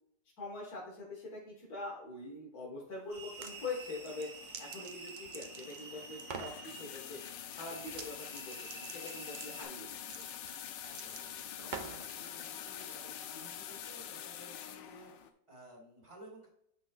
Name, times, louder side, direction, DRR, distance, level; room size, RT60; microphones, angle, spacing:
voice 1, 0.4-4.3 4.6-7.2 7.6-10.2, left 3 dB, 60° left, -5 dB, 2.0 m, -44 dB
sound 1, 3.1-9.6, right 4 dB, 60° right, 2.4 m, -50 dB
sound 2, 3.2-3.6 4.0-5.9 6.2-6.6 7.9-8.1 8.3-12.1, right 5 dB, 85° right, 0.4 m, -46 dB
sound 3, 3.5-15.3, left 9 dB, 90° left, 1.4 m, -46 dB
voice 2, 10.8-15.1 15.5-16.5, right 1 dB, 15° right, -2 dB, 2.0 m, -55 dB
8.8 x 6.1 x 2.4 m, 0.73 s
omnidirectional pair, 1.9 m